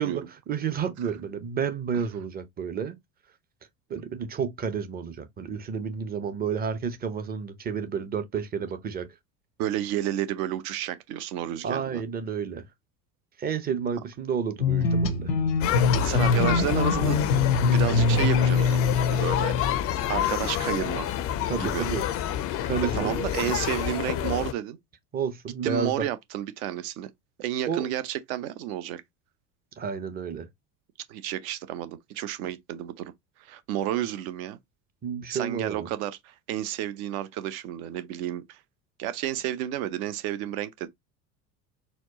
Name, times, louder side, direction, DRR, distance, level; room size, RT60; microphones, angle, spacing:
voice 1, 0.0-3.0 3.9-9.1 11.6-12.6 13.4-15.3 21.5-22.0 22.7-23.2 25.1-26.1 27.7-27.9 29.8-30.5 35.0-35.9, right 6 dB, 20° right, 0.5 m, -30 dB
voice 2, 9.6-12.0 16.0-17.2 17.7-19.8 20.1-21.1 21.6-21.9 22.9-24.8 25.6-27.1 27.4-29.0 31.1-33.1 33.4-34.6 35.3-38.6 39.0-40.9, right 12 dB, 60° right, 0.7 m, -31 dB
sound 1, 14.6-19.8, left 4 dB, 85° left, 0.7 m, -23 dB
sound 2, 15.6-24.5, left 11 dB, 30° left, 0.4 m, -28 dB
4.2 x 2.0 x 2.8 m
figure-of-eight pair, 70°, 49 cm